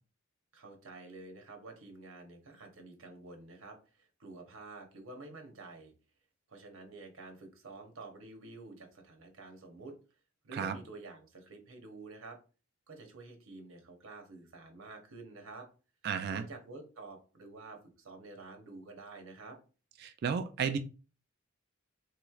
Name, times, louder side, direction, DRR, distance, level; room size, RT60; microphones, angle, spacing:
voice 1, 0.5-5.9 6.5-9.9 10.4-12.4 12.9-15.7 16.3-19.6, right 3 dB, 90° right, 4 dB, 0.9 m, -49 dB
voice 2, 16.0-16.4 20.0-20.8, right 6 dB, 50° right, 9 dB, 0.3 m, -33 dB
3.4 x 3.1 x 2.3 m, 0.34 s
head